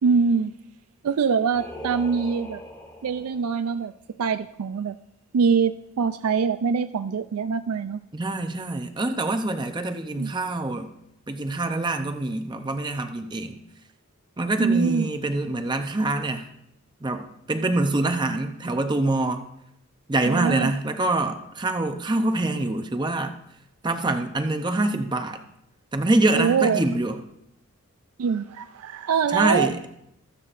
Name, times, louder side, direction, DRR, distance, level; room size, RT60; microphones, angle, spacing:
voice 1, 0.0-0.5 1.0-2.6 3.0-3.9 4.2-5.0 5.3-8.0 10.2-10.3 14.6-15.1 20.2-20.7 26.3-26.8 28.2-29.7, right 6 dB, 80° right, 12 dB, 0.4 m, -23 dB
Singing, 1.5-3.6, left 1 dB, 15° left, 1.9 m, -40 dB
voice 2, 8.1-10.9 11.3-13.6 14.4-16.5 17.0-19.4 20.1-23.4 23.8-25.4 25.9-27.2 29.3-29.8, right 2 dB, 20° right, 6 dB, 0.6 m, -25 dB
24.0 x 8.2 x 2.5 m, 0.81 s
head